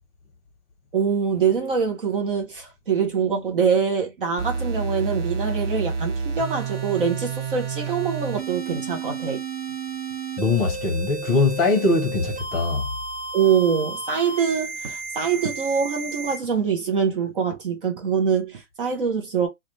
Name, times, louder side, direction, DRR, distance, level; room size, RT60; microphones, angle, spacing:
voice 1, 0.9-9.4 13.3-19.5, right 6 dB, 35° right, 0.6 m, -24 dB
sound 1, 4.4-16.4, right 5 dB, 55° right, 1.1 m, -31 dB
voice 2, 10.4-12.9, left 3 dB, 25° left, 0.8 m, -21 dB
2.3 x 2.2 x 2.9 m
hypercardioid pair, 135°, 46 cm